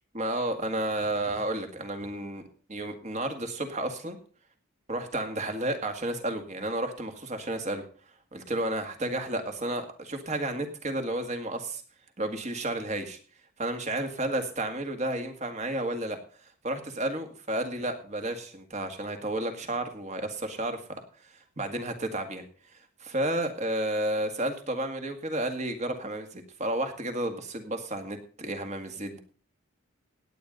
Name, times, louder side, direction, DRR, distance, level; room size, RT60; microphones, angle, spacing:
voice 1, 0.1-2.4 2.7-4.2 4.9-7.8 8.3-11.8 12.2-13.2 13.6-16.2 16.6-29.2, right 1 dB, 35° right, 6 dB, 1.9 m, -32 dB
17.0 x 9.3 x 3.9 m, 0.40 s
head